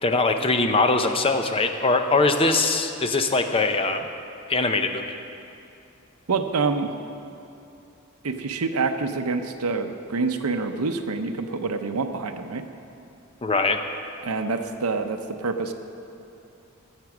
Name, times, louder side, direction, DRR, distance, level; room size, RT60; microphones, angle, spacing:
voice 1, 0.0-4.0 4.5-5.2 13.4-13.8, left 3 dB, 25° left, 6 dB, 0.6 m, -22 dB
voice 2, 6.3-6.9 8.2-12.6 14.2-15.7, right 4 dB, 85° right, 7 dB, 0.7 m, -26 dB
14.0 x 8.3 x 6.0 m, 2.7 s
head